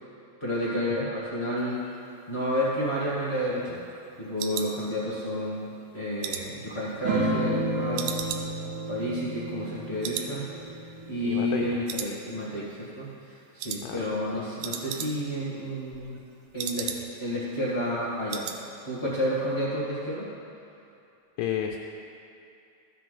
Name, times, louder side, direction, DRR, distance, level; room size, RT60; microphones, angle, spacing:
voice 1, 0.4-1.8 2.3-3.8 4.2-8.2 8.9-16.2 16.5-16.9 17.2-18.5 18.8-20.3, equal, 30° left, -8 dB, 1.2 m, -30 dB
sound 1, 2.7-5.4 5.8-7.6 8.0-9.8 10.0-10.4 10.6-10.7 11.2-11.6 11.9-12.7 12.9-13.2 13.6-13.9 14.2-14.3 14.5-15.4 15.7-17.3 17.6-17.7 18.0-18.6 18.9-19.2 19.5-19.6, right 8 dB, 85° right, 2.4 m, -37 dB
sound 2, 7.0-12.0, right 1 dB, 60° right, 1.4 m, -32 dB
voice 2, 11.2-11.8 13.8-14.0 21.4-21.8, left 10 dB, 80° left, 2 dB, 2.2 m, -31 dB
14.0 x 7.4 x 4.0 m, 2.6 s
omnidirectional pair, 4.0 m